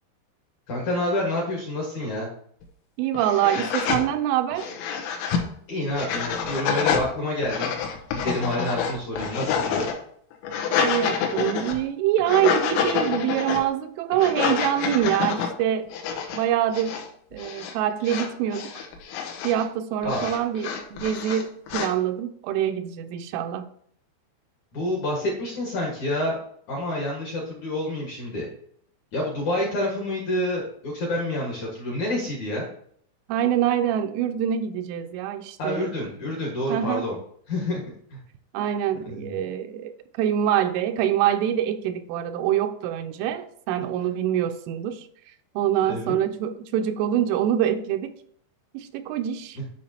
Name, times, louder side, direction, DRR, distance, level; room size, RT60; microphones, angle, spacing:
voice 1, 0.7-2.3 5.7-7.7 8.1-9.9 20.0-20.3 24.7-26.4 26.7-28.5 29.1-32.7 35.6-37.2 37.5-37.8 38.1-38.2 39.0-39.3 45.9-46.2 49.6-49.7, left 1 dB, 60° left, -2 dB, 2.1 m, -28 dB
sound 1, 2.6-2.7 3.1-4.0 4.5-5.5 5.9-7.1 7.4-9.9 10.3-11.8 12.2-13.6 14.1-15.5 15.9-16.4 16.7-17.1 17.3-17.7 18.0-19.6 20.0-21.9, left 6 dB, 80° left, 3.5 m, -27 dB
voice 2, 3.0-4.7 10.8-16.0 16.3-18.7 19.4-23.6 33.3-35.9 36.7-37.1 38.5-45.1 45.6-48.1 48.7-49.6, right 10 dB, 85° right, 8 dB, 3.1 m, -25 dB
11.5 x 5.9 x 2.9 m, 0.63 s
omnidirectional pair, 5.7 m